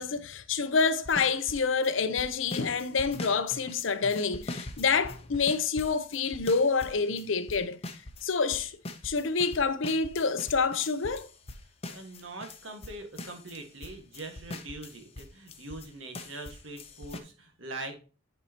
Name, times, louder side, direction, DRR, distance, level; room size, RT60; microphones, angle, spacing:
voice 1, 0.0-7.8 8.2-8.8 9.0-11.3, left 5 dB, 75° left, 0.7 m, -27 dB
sound 1, 0.8-1.9 2.2-8.2 8.5-15.9 16.1-17.2, left 1 dB, 30° left, 0.8 m, -42 dB
voice 2, 11.9-17.9, right 2 dB, 80° right, 1.7 m, -42 dB
9.7 x 4.7 x 2.9 m
head